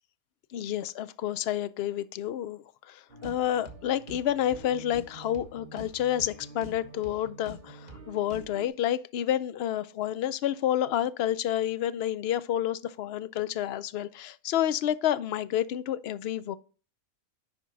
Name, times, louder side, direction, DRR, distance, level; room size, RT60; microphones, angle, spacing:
voice 1, 0.5-16.6, left 11 dB, 60° left, 0.7 m, -29 dB
sound 1, 3.1-8.7, right 2 dB, 35° right, 1.4 m, -46 dB
11.0 x 4.4 x 3.9 m
omnidirectional pair, 1.5 m